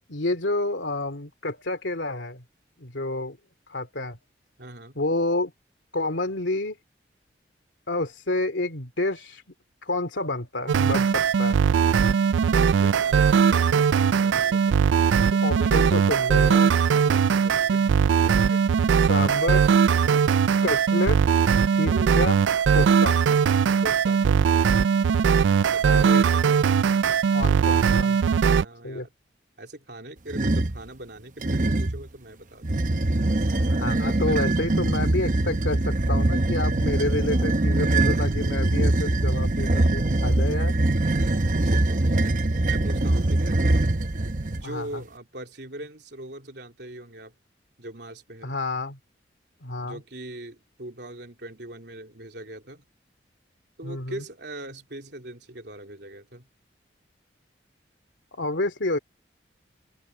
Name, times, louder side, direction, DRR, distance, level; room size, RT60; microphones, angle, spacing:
voice 1, 0.1-2.4 2.8-3.4 3.7-4.2 5.0-5.5 5.9-6.8 7.9-9.4 9.8-11.6 15.4-16.7 19.1-19.6 20.6-21.3 21.7-22.4 22.7-23.2 25.9-26.2 27.3-28.4 28.8-29.1 33.7-40.8 44.6-45.0 48.4-49.0 49.6-50.0 53.8-54.2 58.3-59.0, left 2 dB, 80° left, 2.6 m, -29 dB
voice 2, 4.6-5.0 12.5-14.9 15.6-16.2 17.0-18.5 19.2-19.5 19.9-20.3 21.8-22.2 23.8-24.7 25.7-26.7 28.4-29.1 29.6-32.9 33.9-34.6 41.5-42.3 42.7-43.6 44.5-47.4 47.8-48.6 49.8-52.8 53.8-56.5, right 1 dB, 65° right, 3.5 m, -41 dB
sound 1, 10.7-28.6, right 6 dB, 80° right, 0.3 m, -20 dB
sound 2, 30.3-30.8 31.4-32.0 32.6-44.6, right 2 dB, 45° right, 0.9 m, -23 dB
open air
head